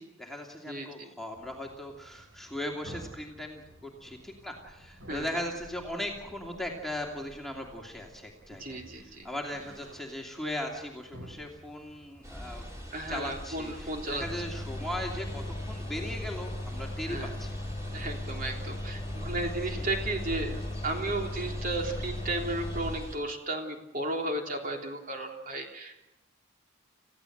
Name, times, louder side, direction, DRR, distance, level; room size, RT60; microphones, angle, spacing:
voice 1, 0.0-8.8 9.2-12.6 13.1-17.5 19.7-19.8, left 1 dB, ahead, 0 dB, 2.7 m, -38 dB
voice 2, 0.7-1.1 5.1-5.4 8.5-9.3 12.9-14.3 17.1-17.3 17.9-25.9, right 2 dB, 40° right, 2 dB, 3.5 m, -34 dB
sound 1, 1.3-17.2, equal, 80° right, 5.7 m, -53 dB
sound 2, 12.2-23.2, equal, 15° right, 4.2 m, -41 dB
sound 3, 14.2-23.0, left 1 dB, 30° left, 2.0 m, -38 dB
29.5 x 15.5 x 8.0 m, 0.89 s
head